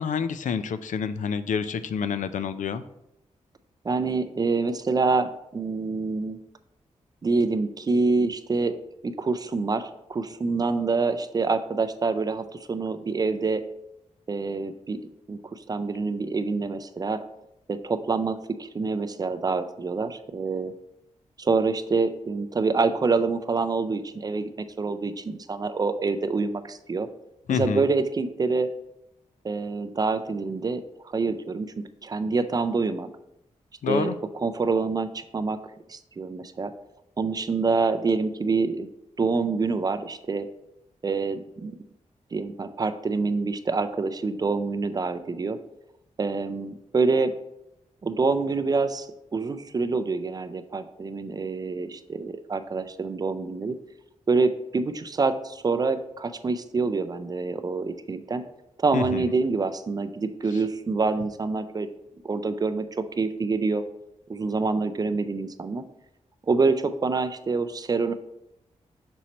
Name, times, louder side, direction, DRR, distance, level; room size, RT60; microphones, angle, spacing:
voice 1, 0.0-2.8 27.5-27.8 33.8-34.2 58.9-59.2, left 7 dB, 80° left, 12 dB, 0.4 m, -28 dB
voice 2, 3.8-6.4 7.2-8.8 9.0-13.6 14.3-15.0 15.3-17.2 17.7-20.7 21.4-27.1 27.5-28.7 29.4-30.8 31.1-31.7 32.0-33.1 33.9-35.6 35.9-36.7 37.2-38.9 39.2-40.5 41.0-41.8 42.3-45.6 46.2-47.3 48.0-53.8 54.3-58.5 58.8-61.9 62.2-63.8 64.3-65.8 66.5-68.1, right 4 dB, 30° right, 10 dB, 0.4 m, -26 dB
6.1 x 4.3 x 4.1 m, 0.83 s
wide cardioid pair, 160°, 13 cm